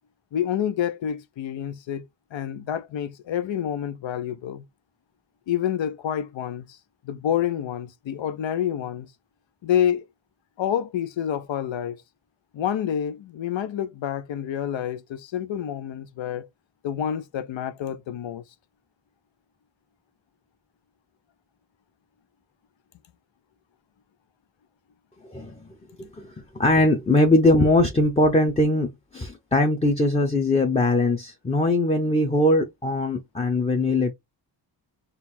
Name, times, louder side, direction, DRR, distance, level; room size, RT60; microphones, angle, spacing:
voice 1, 0.3-2.0 2.3-4.6 5.5-6.8 7.0-9.1 9.6-10.0 10.6-12.0 12.5-16.5 16.8-18.4, left 9 dB, 85° left, 0.6 m, -28 dB
voice 2, 25.2-34.1, left 2 dB, 15° left, 0.6 m, -21 dB
4.0 x 2.4 x 4.1 m
wide cardioid pair, 135°, 44 cm